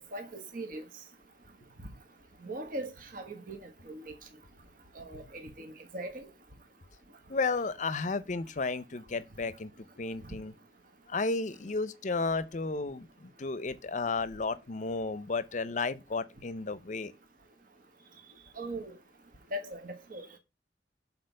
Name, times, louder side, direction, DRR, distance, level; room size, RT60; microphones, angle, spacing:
voice 1, 0.1-0.8 2.4-3.6 3.9-4.1 5.0-6.3 18.6-18.9 19.5-20.3, right 1 dB, 50° right, 1.3 m, -40 dB
voice 2, 7.3-9.7 10.0-10.5 11.1-17.1, left 3 dB, 45° left, 0.6 m, -33 dB
6.7 x 4.1 x 5.3 m
head